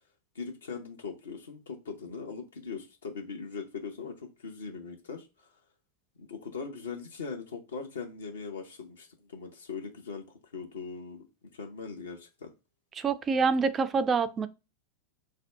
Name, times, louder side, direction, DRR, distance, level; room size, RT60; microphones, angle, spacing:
voice 1, 0.3-5.6 6.2-11.2 11.5-12.5, left 5 dB, 70° left, 0.6 m, -40 dB
voice 2, 13.0-14.5, right 5 dB, 20° right, 0.3 m, -26 dB
2.6 x 2.2 x 3.3 m
figure-of-eight pair, 90°, 0 cm